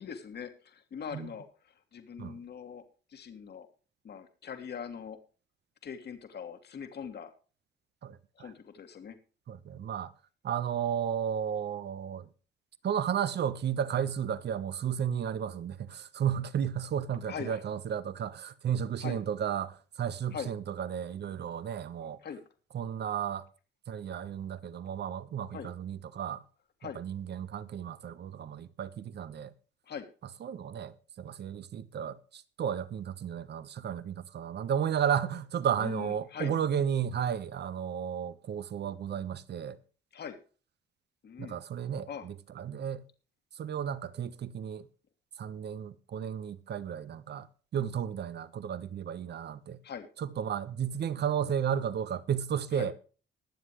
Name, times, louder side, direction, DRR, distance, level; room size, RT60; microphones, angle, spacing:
voice 1, 0.0-2.8 3.1-3.7 4.0-5.2 5.8-7.3 8.4-9.2 17.3-17.6 19.0-19.2 20.3-20.5 22.2-22.4 25.5-25.7 26.8-27.0 29.9-30.1 35.8-36.5 40.1-40.4 41.2-41.6 42.1-42.3 49.8-50.1 52.7-52.9, left 7 dB, 55° left, 2.3 m, -41 dB
voice 2, 8.0-8.5 9.5-10.1 10.4-12.3 12.8-22.2 22.7-23.4 23.9-26.4 26.9-29.5 30.4-39.8 41.4-43.0 43.5-44.9 45.4-47.5 47.7-49.8 50.2-52.9, right 8 dB, 60° right, 1.2 m, -33 dB
21.5 x 7.6 x 3.2 m
cardioid pair, 90°, 20 cm